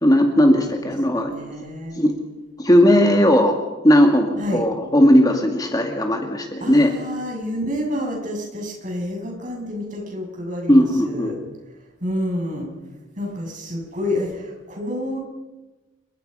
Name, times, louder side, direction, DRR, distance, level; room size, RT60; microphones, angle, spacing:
voice 1, 0.0-1.3 2.0-2.1 2.6-3.6 3.8-6.9 10.7-11.3, equal, 20° left, 3 dB, 2.2 m, -16 dB
voice 2, 1.1-2.0 4.4-4.7 6.6-11.4 12.0-12.7 13.2-15.2, left 1 dB, 40° right, 0 dB, 7.8 m, -28 dB
29.0 x 24.5 x 5.6 m, 1.1 s
head